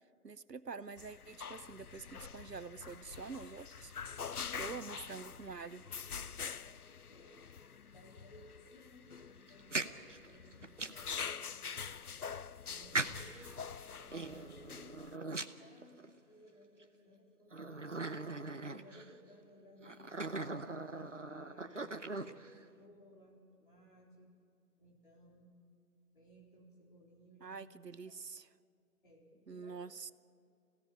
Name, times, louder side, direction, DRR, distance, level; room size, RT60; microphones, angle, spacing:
voice 1, 0.2-3.9 4.5-5.9 27.4-28.5 29.5-30.1, right 5 dB, 80° right, 16 dB, 0.9 m, -46 dB
sound 1, 1.0-15.1, left 6 dB, 70° left, 0.6 m, -46 dB
voice 2, 6.7-7.5 7.9-11.9 12.7-18.2 18.6-20.4 20.9-24.4 24.8-25.5 26.1-27.6 28.1-28.2 29.0-29.8, equal, 30° left, -3 dB, 4.1 m, -60 dB
sound 2, 9.5-11.1 11.8-11.9 12.9-13.5 14.1-16.2 16.8-16.9 17.5-19.1 19.8-22.6, right 2 dB, 50° right, 0.9 m, -40 dB
26.0 x 17.0 x 8.6 m, 2.4 s
figure-of-eight pair, 165°, 48 cm